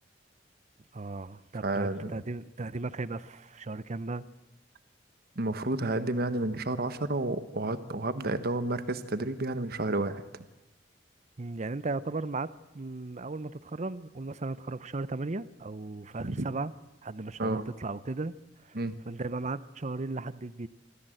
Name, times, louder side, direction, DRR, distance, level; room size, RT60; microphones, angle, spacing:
voice 1, 0.9-4.2 11.4-12.5 12.7-16.7 17.0-18.3 18.6-18.8 19.1-20.7, right 3 dB, 40° right, 17 dB, 0.7 m, -36 dB
voice 2, 1.6-2.2 5.3-10.2 16.2-16.5 17.4-17.6 18.7-18.9, right 2 dB, 55° right, 11 dB, 1.3 m, -31 dB
24.5 x 15.0 x 7.8 m, 1.0 s
head